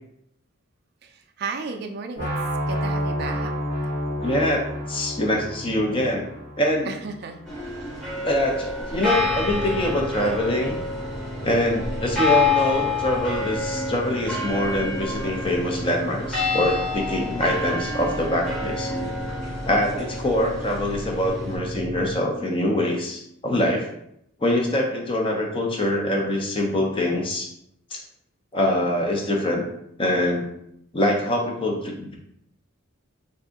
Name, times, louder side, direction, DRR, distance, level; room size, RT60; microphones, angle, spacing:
voice 1, 1.0-2.3 2.7-3.5 3.9-4.0 6.9-7.4, right 4 dB, 50° right, 5 dB, 0.3 m, -33 dB
sound 1, 2.2-8.1, equal, 45° left, 0.9 m, -30 dB
voice 2, 4.2-6.3 6.6-6.9 8.2-10.8 11.4-18.9 19.6-23.9 24.4-27.5 27.9-28.0 28.5-29.6 30.0-30.4 30.9-32.1, left 1 dB, 25° left, 0 dB, 0.5 m, -24 dB
sound 2, 7.5-21.6, left 3 dB, ahead, 0.9 m, -28 dB
sound 3, 9.1-22.2, equal, 20° right, 0.7 m, -36 dB
2.7 x 2.5 x 3.5 m, 0.76 s
head